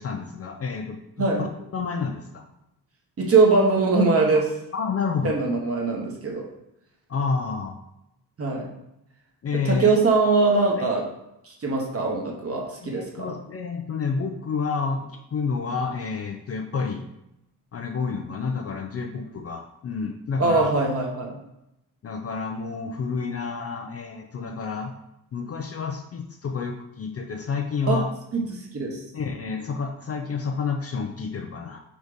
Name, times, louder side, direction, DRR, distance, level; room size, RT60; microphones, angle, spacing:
voice 1, 0.0-2.4 4.3-4.4 4.7-5.4 7.1-7.8 9.4-9.9 10.8-10.9 12.8-17.0 17.7-20.7 22.0-24.9 25.3-28.1 29.1-31.8, left 5 dB, 40° left, 3 dB, 0.5 m, -29 dB
voice 2, 3.2-4.5 5.2-6.4 8.4-8.7 9.6-11.1 11.4-13.3 20.4-21.4 27.8-28.0 28.3-29.0, right 3 dB, 35° right, 0 dB, 1.2 m, -22 dB
4.8 x 4.1 x 5.0 m, 0.84 s
wide cardioid pair, 175°, 39 cm